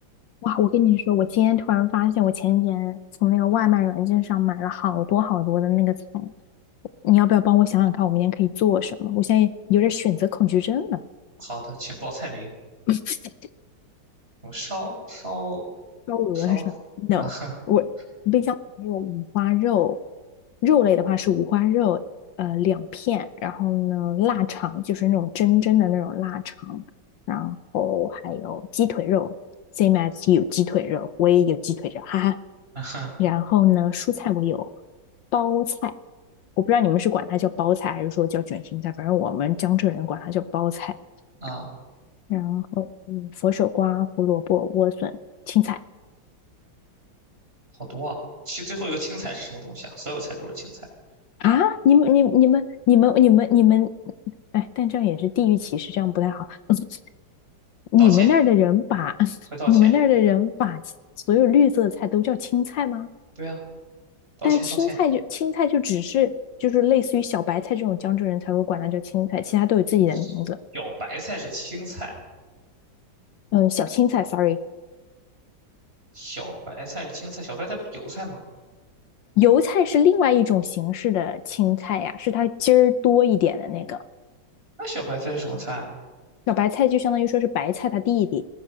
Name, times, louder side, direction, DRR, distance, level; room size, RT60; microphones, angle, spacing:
voice 1, 0.4-6.3 7.0-11.0 12.9-13.2 16.1-16.6 17.0-17.3 17.7-17.9 18.3-20.0 20.6-22.0 22.4-26.8 27.3-29.3 29.8-32.4 33.2-34.7 35.3-35.9 36.6-41.0 42.3-45.1 45.5-45.8 51.4-53.9 54.5-57.0 57.9-59.4 59.7-60.8 61.3-63.1 64.4-70.6 73.5-74.6 79.4-84.0 86.5-88.5, left 11 dB, 75° left, 12 dB, 1.5 m, -21 dB
voice 2, 11.4-12.5 14.4-15.6 16.3-16.6 17.2-17.6 32.7-33.1 41.4-41.7 47.9-48.2 48.5-50.8 58.0-58.3 59.5-59.9 63.4-63.6 64.4-65.0 70.1-70.3 70.7-72.2 76.1-78.4 83.7-83.8 84.8-85.9, right 1 dB, 30° right, 1 dB, 5.8 m, -33 dB
21.5 x 20.0 x 6.4 m, 1.3 s
omnidirectional pair, 2.1 m